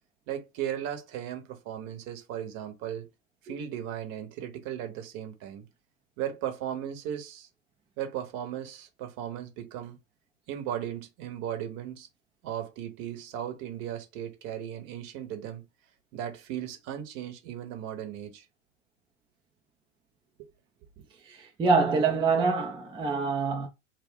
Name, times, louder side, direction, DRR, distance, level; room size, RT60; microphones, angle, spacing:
voice 1, 0.3-3.1 3.4-5.7 6.2-7.5 8.0-10.0 10.5-12.1 12.4-15.6 16.1-18.4 20.4-20.5, right 10 dB, 45° right, 1.0 m, -36 dB
voice 2, 21.2-23.7, right 4 dB, 15° right, 0.5 m, -25 dB
2.3 x 2.2 x 3.7 m
hypercardioid pair, 95°, 39 cm